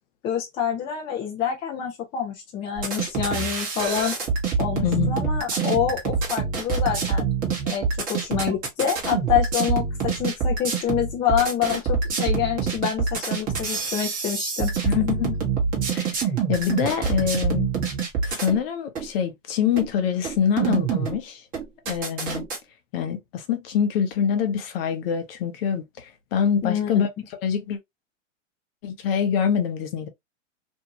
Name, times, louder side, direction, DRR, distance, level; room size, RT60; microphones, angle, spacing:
voice 1, 0.2-4.1 4.6-7.3 7.7-14.7 26.6-26.9, left 9 dB, 15° left, 0.4 m, -27 dB
sound 1, 2.8-18.6 18.9-19.1 19.8-19.9 20.2-21.2 21.5-22.6, right 5 dB, 20° right, 1.0 m, -26 dB
voice 2, 4.8-5.2 14.8-15.4 15.9-17.7 18.2-21.4 21.9-22.5 22.9-27.1 27.4-27.8 28.8-30.1, left 8 dB, 50° left, 0.8 m, -25 dB
2.7 x 2.2 x 2.8 m
hypercardioid pair, 135°, 38 cm